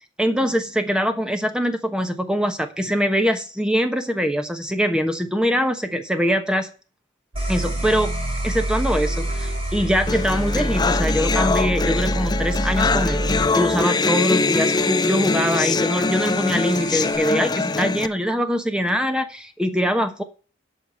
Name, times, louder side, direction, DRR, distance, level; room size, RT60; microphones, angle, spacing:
voice 1, 0.2-6.7 7.5-8.1 8.4-20.2, equal, 5° right, 7 dB, 1.1 m, -23 dB
sound 1, 7.3-13.5, right 1 dB, 80° right, 1.8 m, -26 dB
sound 2, 7.4-17.2, right 1 dB, 30° right, 3.2 m, -38 dB
sound 3, 10.1-18.1, left 3 dB, 20° left, 0.4 m, -23 dB
8.5 x 5.8 x 7.6 m, 0.38 s
head